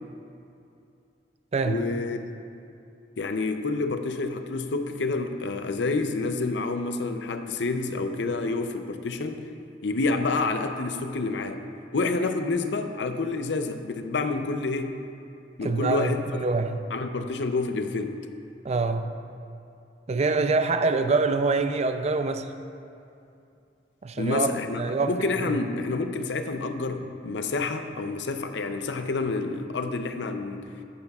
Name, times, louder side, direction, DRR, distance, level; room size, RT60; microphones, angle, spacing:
voice 1, 1.6-2.3 3.2-9.4 9.8-11.6 11.9-15.0 15.6-16.4 16.9-18.2 24.2-30.8, left 3 dB, 75° left, 7 dB, 0.6 m, -28 dB
voice 2, 15.6-16.8 18.6-19.1 20.1-22.5 24.0-24.5 24.8-25.1 25.4-25.6, right 3 dB, 40° right, 8 dB, 0.4 m, -25 dB
13.5 x 9.5 x 2.4 m, 2.6 s
head